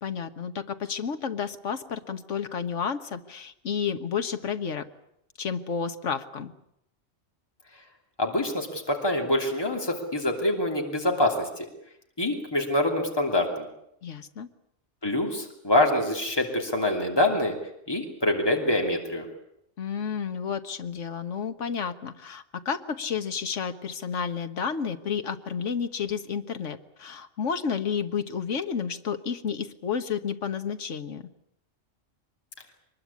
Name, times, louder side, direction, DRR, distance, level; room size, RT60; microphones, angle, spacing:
voice 1, 0.0-4.9 5.4-6.5 14.0-14.5 19.8-31.2, left 6 dB, 75° left, 9 dB, 1.6 m, -31 dB
voice 2, 8.2-11.6 12.2-13.7 15.0-17.5 17.9-19.3, left 1 dB, 20° left, 2 dB, 2.9 m, -25 dB
23.5 x 21.0 x 8.5 m, 0.77 s
omnidirectional pair, 1.3 m